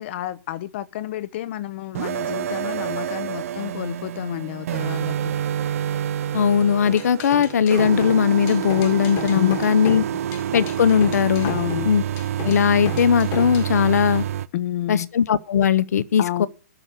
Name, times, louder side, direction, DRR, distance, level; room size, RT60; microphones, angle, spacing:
voice 1, 0.0-5.4 9.3-9.5 11.4-11.9 14.5-15.1 16.2-16.5, left 13 dB, 45° left, 0.9 m, -30 dB
sound 1, 1.9-14.5, right 10 dB, 55° right, 0.7 m, -28 dB
voice 2, 6.3-10.0 10.5-11.5 11.8-12.0 12.4-14.2 14.9-16.5, left 7 dB, 70° left, 0.9 m, -19 dB
sound 2, 6.9-13.7, left 8 dB, 25° left, 1.4 m, -35 dB
11.5 x 6.5 x 9.0 m
hypercardioid pair, 150°, 9 cm